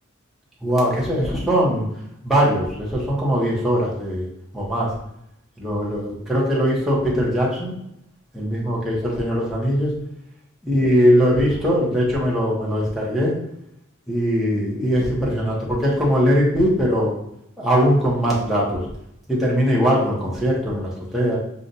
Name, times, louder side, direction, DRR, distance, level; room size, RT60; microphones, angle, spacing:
voice 1, 0.6-1.9 2.2-4.3 4.5-4.9 5.6-7.8 8.3-9.9 10.6-13.3 14.1-17.1 17.6-18.8 19.3-21.4, equal, ahead, -6 dB, 0.9 m, -20 dB
5.6 x 2.4 x 2.6 m, 0.79 s
head